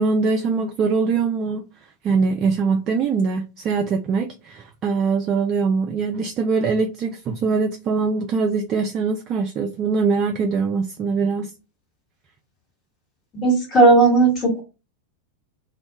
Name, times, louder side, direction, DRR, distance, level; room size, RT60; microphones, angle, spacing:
voice 1, 0.0-1.6 2.0-11.5, right 4 dB, 30° right, 0.3 m, -22 dB
voice 2, 13.3-14.6, right 3 dB, 25° left, 1.3 m, -15 dB
2.2 x 2.1 x 2.8 m
figure-of-eight pair, 90°, 0 cm